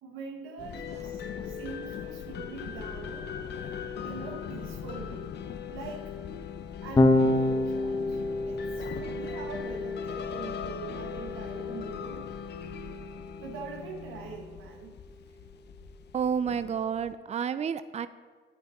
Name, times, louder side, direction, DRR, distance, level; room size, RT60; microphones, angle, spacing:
voice 1, 0.0-3.3 4.0-5.3 5.7-6.1 6.8-8.2 8.4-12.4 13.4-14.9, right 4 dB, 90° right, 1 dB, 1.3 m, -43 dB
sound 1, 0.6-17.1, left 8 dB, 60° left, 0.7 m, -39 dB
Electric guitar / Bass guitar, 7.0-13.4, left 2 dB, 20° left, 0.9 m, -29 dB
voice 2, 16.1-18.1, right 7 dB, 35° right, 13 dB, 0.5 m, -30 dB
9.4 x 8.7 x 4.2 m, 1.5 s
cardioid pair, 90°, 20 cm